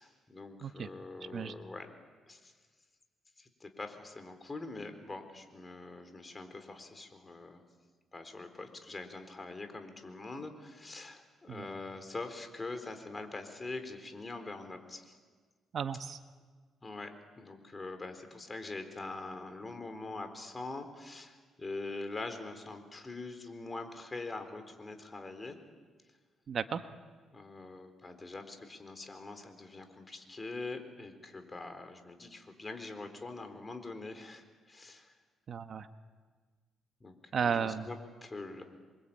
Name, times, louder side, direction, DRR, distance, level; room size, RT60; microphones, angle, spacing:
voice 1, 0.0-1.9 2.3-2.5 3.4-7.6 8.1-15.2 16.8-25.6 27.3-35.1 37.0-38.6, left 3 dB, 25° left, 7 dB, 4.1 m, -44 dB
voice 2, 15.7-16.2 26.5-26.8 35.5-35.9 37.3-37.9, right 7 dB, 55° right, 8 dB, 1.3 m, -34 dB
28.5 x 23.5 x 8.8 m, 1.5 s
cardioid pair, 90°, 0 cm